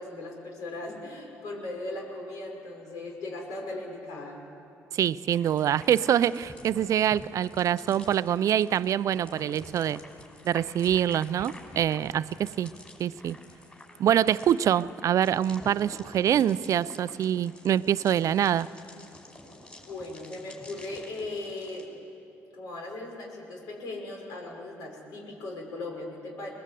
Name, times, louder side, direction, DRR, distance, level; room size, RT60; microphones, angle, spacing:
voice 1, 0.0-4.4 19.9-21.9 22.5-26.5, left 2 dB, 75° left, 0 dB, 5.7 m, -38 dB
voice 2, 4.9-10.0 10.4-12.7 13.0-13.4 14.0-18.7, right 10 dB, 60° right, 17 dB, 0.5 m, -25 dB
sound 1, 5.3-21.8, left 1 dB, 20° left, 5.3 m, -49 dB
22.0 x 20.5 x 8.3 m, 2.7 s
supercardioid pair, 70°, 6 cm